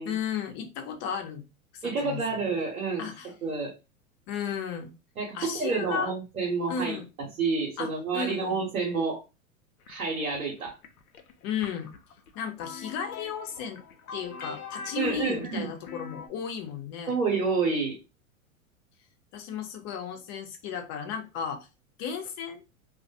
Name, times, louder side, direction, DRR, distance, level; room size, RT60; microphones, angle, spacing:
voice 1, 0.0-1.4 1.7-2.4 3.0-3.3 4.3-5.0 5.3-6.1 6.7-7.1 7.8-8.7 11.4-11.9 12.3-13.8 14.1-17.1 19.3-21.7 22.0-22.6, left 7 dB, 40° left, 5 dB, 0.7 m, -34 dB
voice 2, 1.8-3.0 3.4-3.7 5.2-7.0 7.4-9.2 9.9-10.7 14.9-15.7 17.1-18.0, right 4 dB, 90° right, -1 dB, 0.9 m, -29 dB
sound 1, 9.9-16.3, left 6 dB, 85° left, 0.6 m, -43 dB
2.2 x 2.1 x 2.7 m, 0.28 s
hypercardioid pair, 105°, 42 cm